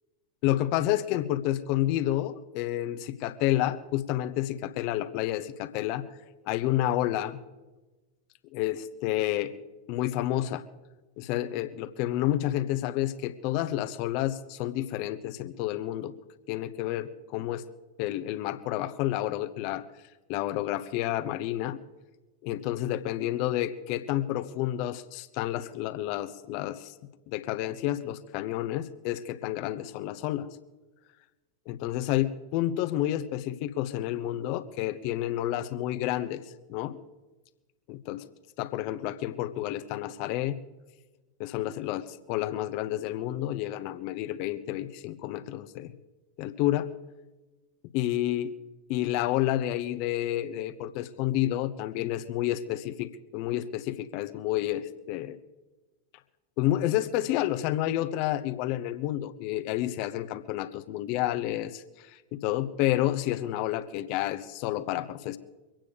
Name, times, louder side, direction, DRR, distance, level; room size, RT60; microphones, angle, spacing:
voice 1, 0.4-6.0 6.5-7.4 8.5-9.5 9.9-10.6 11.2-16.1 16.5-17.6 18.0-19.8 20.3-21.8 22.4-26.9 27.3-30.5 31.7-36.4 36.7-37.0 37.9-38.2 38.6-40.6 41.4-45.9 46.4-46.9 47.9-48.5 48.9-55.4 56.6-65.4, left 13 dB, 45° left, 11 dB, 1.0 m, -30 dB
24.0 x 9.0 x 5.1 m, 1.2 s
figure-of-eight pair, 90°, 0 cm